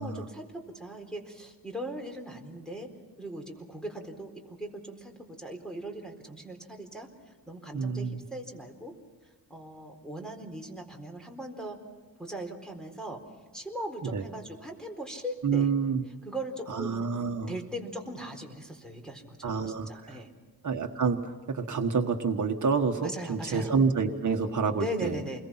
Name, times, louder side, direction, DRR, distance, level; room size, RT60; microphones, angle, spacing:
voice 1, 0.0-2.9 3.2-8.9 9.5-11.8 12.2-13.2 13.5-15.7 16.2-17.1 17.5-20.3 23.0-23.8 24.8-25.4, right 1 dB, ahead, 3 dB, 4.1 m, -39 dB
voice 2, 7.7-8.2 14.0-14.2 15.4-16.0 16.7-17.5 19.4-20.2 20.6-25.2, right 5 dB, 50° right, 3 dB, 1.6 m, -28 dB
29.0 x 22.0 x 5.9 m, 1.4 s
wide cardioid pair, 115°, 37 cm